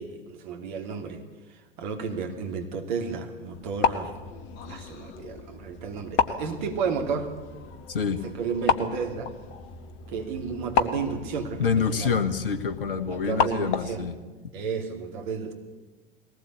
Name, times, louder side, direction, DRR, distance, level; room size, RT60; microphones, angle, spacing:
voice 1, 0.0-4.1 4.7-7.3 8.2-9.3 10.1-12.2 13.1-14.1 14.5-15.5, right 5 dB, 50° right, 4 dB, 2.9 m, -32 dB
sound 1, 3.5-14.1, left 6 dB, 40° left, 1.5 m, -32 dB
voice 2, 7.9-8.2 11.6-14.2, left 6 dB, 65° left, 11 dB, 1.7 m, -27 dB
21.5 x 19.5 x 8.4 m, 1.2 s
figure-of-eight pair, 90°, 30 cm